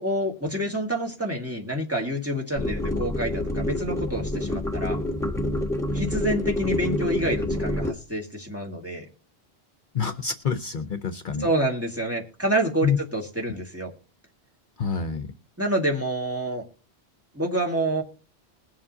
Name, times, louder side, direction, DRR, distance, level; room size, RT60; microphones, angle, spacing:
voice 1, 0.0-5.0 5.9-9.1 11.4-13.9 15.6-16.6 17.3-18.0, right 1 dB, 15° right, 0 dB, 1.9 m, -27 dB
sound 1, 2.6-7.9, left 1 dB, 5° left, 1.0 m, -27 dB
voice 2, 9.9-11.5 12.8-13.0 14.8-15.3, left 6 dB, 55° left, 9 dB, 0.8 m, -27 dB
21.0 x 7.4 x 2.8 m, 0.36 s
omnidirectional pair, 1.1 m